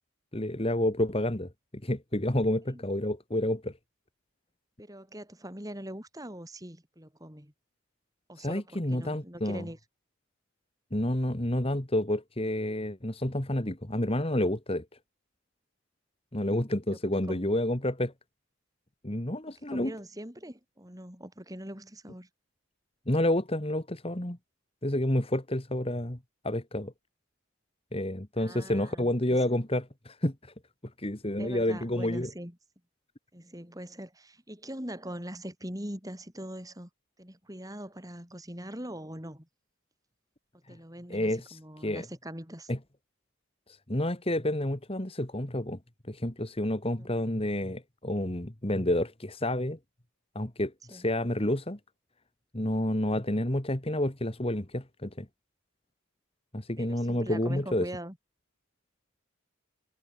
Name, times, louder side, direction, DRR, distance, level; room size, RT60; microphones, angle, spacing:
voice 1, 0.3-1.5 1.8-3.7 8.4-9.6 10.9-14.9 16.3-18.1 19.0-19.9 23.1-24.4 24.8-26.2 26.4-26.9 27.9-30.5 31.0-32.3 41.1-42.1 42.7-42.8 43.9-45.8 46.1-49.8 50.4-51.8 52.5-55.3 56.5-57.9, left 1 dB, 25° left, 1.9 m, -29 dB
voice 2, 4.8-7.5 8.3-9.8 17.2-17.5 19.7-22.3 28.4-29.4 31.4-32.6 33.3-36.9 37.2-39.5 40.7-42.7 47.0-47.1 50.9-51.1 56.8-58.2, right 1 dB, 15° right, 5.1 m, -42 dB
head